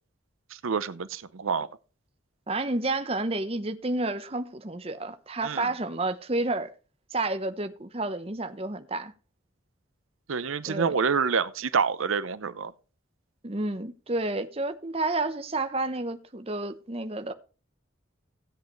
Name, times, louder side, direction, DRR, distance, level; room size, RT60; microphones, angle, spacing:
voice 1, 0.5-1.7 5.4-5.7 10.3-12.7, right 5 dB, 90° right, 0.7 m, -27 dB
voice 2, 2.5-6.7 7.1-9.1 10.7-11.0 13.4-17.3, right 2 dB, 30° right, 0.9 m, -30 dB
16.0 x 8.0 x 3.1 m
head